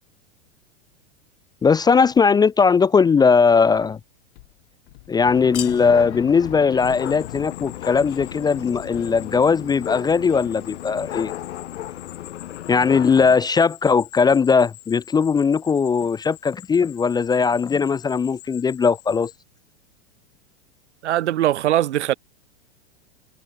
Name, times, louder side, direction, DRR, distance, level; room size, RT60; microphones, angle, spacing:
voice 1, 1.6-4.0 5.1-11.3 12.7-19.3, left 5 dB, 10° left, 0.5 m, -19 dB
sound 1, 3.7-4.0 4.3-10.4, left 20 dB, 60° left, 5.3 m, -46 dB
sound 2, 5.2-13.4, left 12 dB, 80° left, 1.9 m, -34 dB
sound 3, 6.8-19.4, left 24 dB, 45° left, 7.0 m, -46 dB
voice 2, 21.0-22.1, right 13 dB, 80° right, 1.9 m, -20 dB
hypercardioid pair, 125°, 34 cm